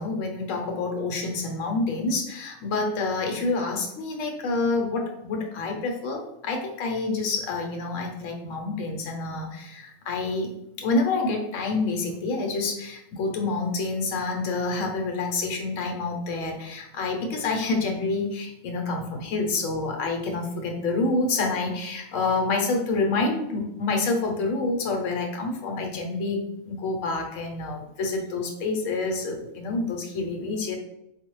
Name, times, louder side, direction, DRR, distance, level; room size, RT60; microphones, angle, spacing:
voice 1, 0.0-30.8, left 3 dB, 70° left, 1 dB, 1.1 m, -28 dB
4.0 x 2.3 x 3.0 m, 0.83 s
omnidirectional pair, 1.4 m